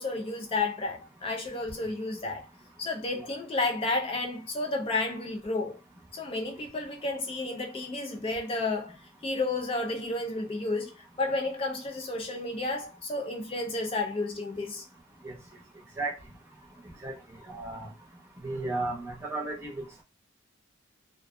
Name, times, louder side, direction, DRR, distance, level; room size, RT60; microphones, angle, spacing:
voice 1, 0.0-2.5 2.8-5.8 6.1-9.0 9.2-14.8, left 2 dB, 25° left, 0.3 m, -31 dB
voice 2, 17.5-17.9 18.4-20.0, right 2 dB, 10° right, 0.7 m, -34 dB
2.4 x 2.2 x 2.4 m
head